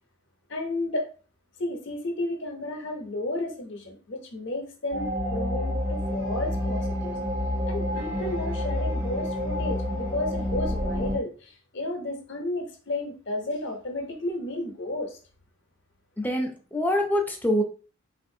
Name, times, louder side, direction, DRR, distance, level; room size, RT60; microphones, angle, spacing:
voice 1, 0.5-1.1 1.6-7.1 7.7-15.2, left 2 dB, 55° left, 4 dB, 0.7 m, -32 dB
sound 1, 4.9-11.2, left 1 dB, 60° right, 0.8 m, -29 dB
voice 2, 16.2-17.6, equal, 10° left, 2 dB, 0.4 m, -25 dB
3.9 x 2.5 x 2.7 m, 0.39 s
head